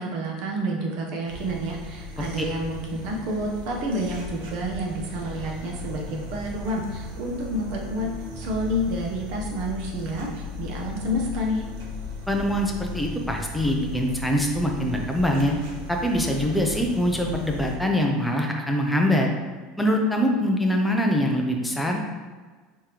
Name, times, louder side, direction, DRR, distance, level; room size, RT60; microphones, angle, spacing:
voice 1, 0.0-8.1 8.4-11.6, equal, 50° right, 0 dB, 0.8 m, -29 dB
sound 1, 1.3-17.7, left 2 dB, 80° right, 1.0 m, -37 dB
voice 2, 12.3-15.5 15.9-19.3 19.8-22.0, equal, ahead, 1 dB, 0.5 m, -23 dB
5.0 x 3.6 x 2.9 m, 1.4 s
supercardioid pair, 160°, 0 cm